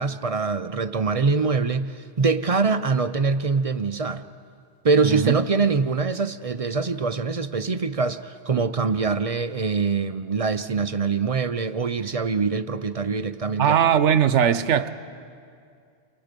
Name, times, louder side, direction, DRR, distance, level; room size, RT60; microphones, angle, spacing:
voice 1, 0.0-4.3 4.8-13.8, right 4 dB, 40° right, 12 dB, 0.5 m, -24 dB
voice 2, 13.6-14.9, right 8 dB, 85° right, 13 dB, 1.1 m, -19 dB
29.0 x 23.5 x 5.2 m, 2.3 s
omnidirectional pair, 1.2 m